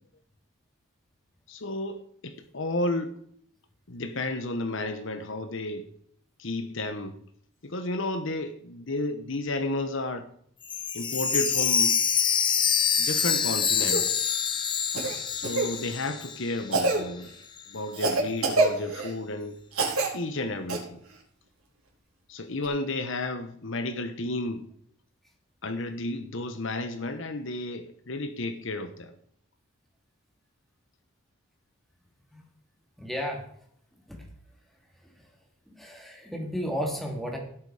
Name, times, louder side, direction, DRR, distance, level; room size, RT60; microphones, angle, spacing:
voice 1, 1.5-3.1 3.9-5.9 6.4-7.2 7.6-10.3 10.9-12.0 13.0-14.3 15.3-17.3 17.7-19.6 20.1-21.0 22.3-24.7 25.6-29.1, left 2 dB, 60° left, 1.1 m, -32 dB
Chime, 10.6-16.6 16.9-17.0 17.6-17.7, left 7 dB, 20° left, 1.0 m, -26 dB
Cough, 13.8-14.0 14.9-15.7 16.7-17.0 17.9-19.1 19.7-20.1 20.7-20.8 22.6-22.7, right 3 dB, 80° right, 4.1 m, -26 dB
voice 2, 33.0-33.4 34.1-34.2 35.8-37.4, equal, ahead, 2.7 m, -32 dB
17.0 x 8.0 x 4.9 m
head